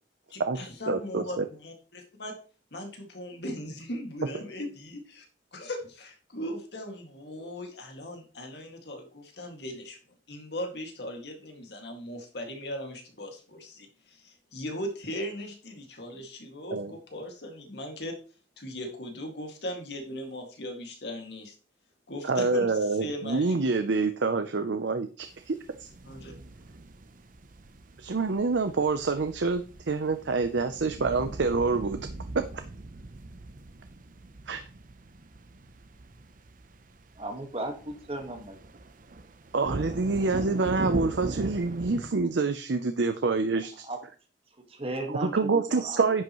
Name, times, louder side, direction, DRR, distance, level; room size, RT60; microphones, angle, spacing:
voice 1, 0.3-2.3 2.7-5.3 5.5-10.0 10.3-18.1 18.6-21.5 22.1-23.5 26.0-26.3, left 1 dB, 70° left, 3 dB, 2.2 m, -38 dB
voice 2, 0.9-1.4 16.7-16.9 22.2-25.6 28.0-32.0 34.5-34.6 39.5-43.7 45.2-46.2, right 4 dB, 90° right, 8 dB, 0.6 m, -27 dB
sound 1, 25.2-42.1, right 2 dB, 50° right, 0.7 m, -40 dB
voice 3, 37.1-38.6 43.8-44.1 44.7-46.2, right 1 dB, 35° right, 4 dB, 1.7 m, -36 dB
10.5 x 7.8 x 3.1 m, 0.37 s
head